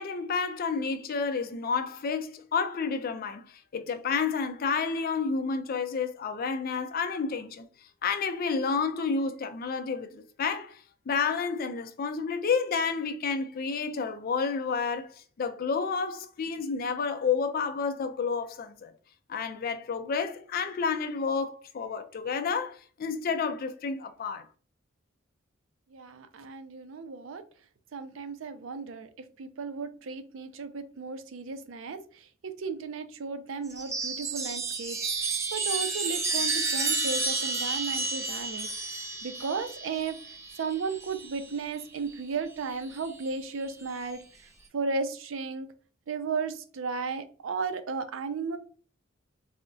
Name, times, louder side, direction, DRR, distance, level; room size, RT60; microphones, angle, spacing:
voice 1, 0.0-7.6 8.0-10.8 11.1-18.9 19.3-24.5, left 5 dB, 50° left, 0.4 m, -30 dB
voice 2, 25.9-27.4 27.9-40.2 40.6-45.7 46.1-48.6, right 4 dB, 75° right, 0.4 m, -35 dB
Chime, 33.7-41.5 42.7-43.3, right 3 dB, 15° right, 0.5 m, -31 dB
4.5 x 2.1 x 2.6 m
head